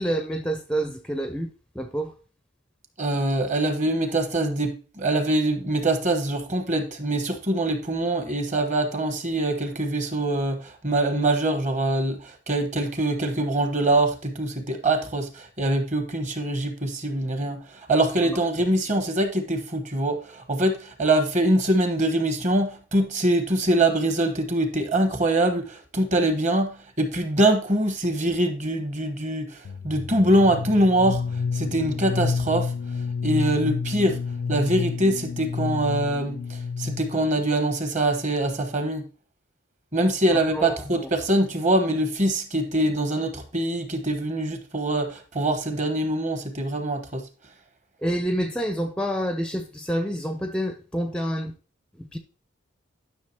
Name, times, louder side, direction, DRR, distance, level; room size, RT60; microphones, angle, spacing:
voice 1, 0.0-1.5 1.8-2.1 18.3-18.4 40.3-40.7 41.0-41.1 48.0-51.5 52.0-52.2, right 1 dB, 5° left, 0.4 m, -28 dB
voice 2, 3.0-32.7 33.2-34.2 34.5-39.1 39.9-47.3, right 1 dB, 35° right, 1.2 m, -24 dB
sound 1, 29.6-37.3, left 5 dB, 80° left, 0.4 m, -29 dB
11.0 x 6.0 x 2.8 m
head